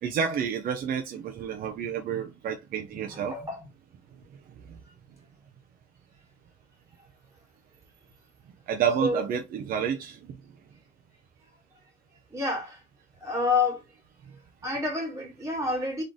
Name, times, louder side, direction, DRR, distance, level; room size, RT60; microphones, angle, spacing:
voice 1, 0.0-3.4 4.7-4.8 8.7-10.4, right 7 dB, 55° right, 0.8 m, -29 dB
voice 2, 2.9-3.7 9.0-9.2 12.3-12.8 13.2-13.8 14.6-16.0, left 3 dB, 20° right, 2.2 m, -29 dB
4.0 x 3.3 x 3.7 m
cardioid pair, 110°, 17 cm